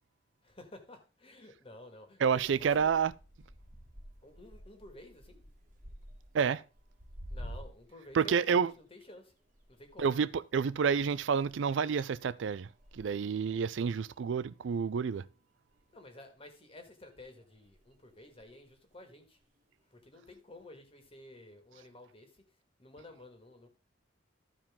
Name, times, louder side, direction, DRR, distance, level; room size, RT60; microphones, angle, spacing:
voice 1, 0.4-3.0 4.2-5.4 7.3-9.3 9.7-10.1 15.1-15.2 15.9-19.4 19.9-22.4 22.8-23.7, left 1 dB, 30° left, 1.9 m, -52 dB
voice 2, 2.2-3.1 6.3-6.6 8.1-8.7 10.0-15.3, right 6 dB, 75° right, 0.4 m, -29 dB
sound 1, 2.4-8.1 8.4-15.5 15.7-16.5 17.1-19.0 19.4-19.8 20.5-20.6, equal, 45° right, 1.5 m, -51 dB
14.0 x 4.8 x 3.7 m
head